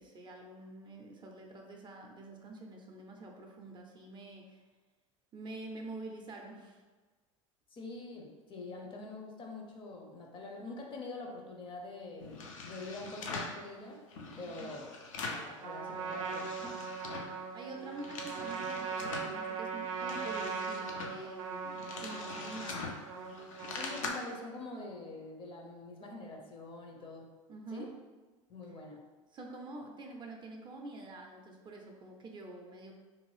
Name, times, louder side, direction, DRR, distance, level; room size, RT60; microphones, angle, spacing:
voice 1, 0.0-4.6 5.3-6.8 14.4-14.7 17.5-22.9 27.5-27.9 29.3-32.9, right 2 dB, 30° right, 1 dB, 0.4 m, -47 dB
voice 2, 7.7-14.0 14.4-14.9 15.2-16.7 23.7-27.3 27.7-27.9 28.5-29.0, left 2 dB, 30° left, 1 dB, 0.6 m, -45 dB
sound 1, 12.2-13.6 14.1-15.5 15.9-17.4 17.7-19.3 19.8-24.1, left 3 dB, 80° left, 0.5 m, -43 dB
Trumpet, 15.6-24.3, right 5 dB, 85° right, 0.5 m, -40 dB
2.6 x 2.4 x 3.2 m, 1.3 s
hypercardioid pair, 85°, 17 cm